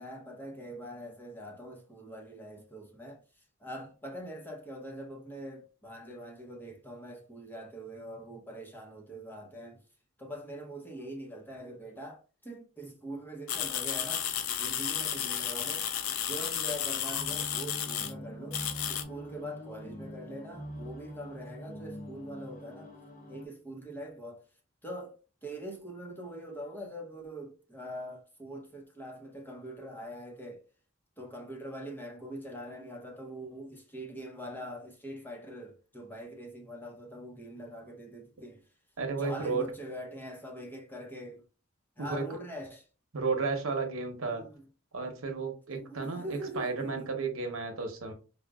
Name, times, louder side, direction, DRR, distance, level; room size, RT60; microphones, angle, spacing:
voice 1, 0.0-9.8 10.2-14.3 14.6-15.9 16.3-18.6 18.9-22.9 23.3-24.4 24.8-25.2 25.4-30.6 31.2-38.7 39.2-41.5 42.0-42.8 44.2-44.6 45.7-47.1, equal, 10° left, 0.7 m, -43 dB
sound 1, 13.5-18.1 18.5-19.0, left 9 dB, 90° left, 0.5 m, -33 dB
sound 2, 17.2-23.5, equal, 40° left, 1.0 m, -44 dB
voice 2, 39.0-39.7 42.0-42.2 43.1-44.4 44.9-48.1, right 4 dB, 90° right, 0.9 m, -33 dB
5.0 x 2.2 x 2.3 m
head